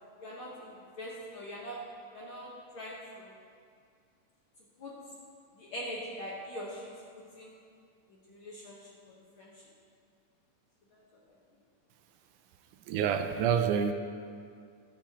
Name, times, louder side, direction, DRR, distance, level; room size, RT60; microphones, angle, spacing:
voice 1, 0.2-1.8 2.1-2.5 2.7-3.3 4.8-4.9 5.6-7.5 8.3-8.8 9.4-9.6 10.9-11.0, equal, 55° left, -5 dB, 1.6 m, -42 dB
voice 2, 12.9-13.9, right 8 dB, 80° right, 7 dB, 2.0 m, -27 dB
18.5 x 7.3 x 2.9 m, 2.3 s
omnidirectional pair, 3.7 m